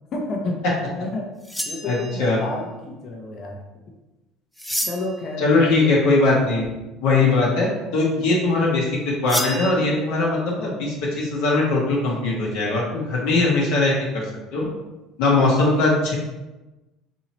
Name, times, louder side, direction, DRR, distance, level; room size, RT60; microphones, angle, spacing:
voice 1, 0.1-0.6 1.0-1.3 1.7-3.6 4.8-6.2 7.1-7.3 8.2-8.3, left 2 dB, 50° left, 1 dB, 0.7 m, -31 dB
sound 1, 1.4-2.4 4.6-5.2 9.3-9.7, equal, ahead, 0.4 m, -29 dB
voice 2, 1.9-2.4 5.4-6.6 7.0-14.3 14.5-14.7 15.2-16.1, left 3 dB, 75° left, -4 dB, 0.9 m, -20 dB
2.9 x 2.7 x 4.3 m, 1.1 s
supercardioid pair, 95°, 0 cm